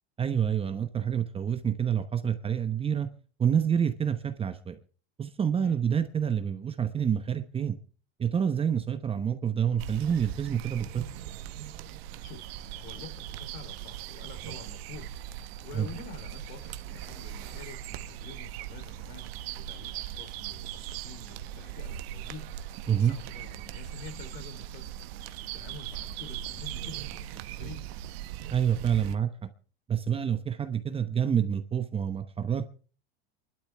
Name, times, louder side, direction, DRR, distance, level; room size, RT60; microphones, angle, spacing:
voice 1, 0.2-3.1 3.4-4.8 5.2-7.8 8.2-11.0 15.7-15.9 22.9-23.1 28.5-29.5 29.9-32.7, right 8 dB, 15° right, 0.9 m, -27 dB
sound 1, 9.8-29.1, right 11 dB, 70° right, 1.1 m, -40 dB
voice 2, 12.8-15.1 15.6-24.9 25.2-27.9, left 4 dB, 65° left, 3.3 m, -47 dB
28.5 x 12.0 x 3.4 m
supercardioid pair, 135°, 32 cm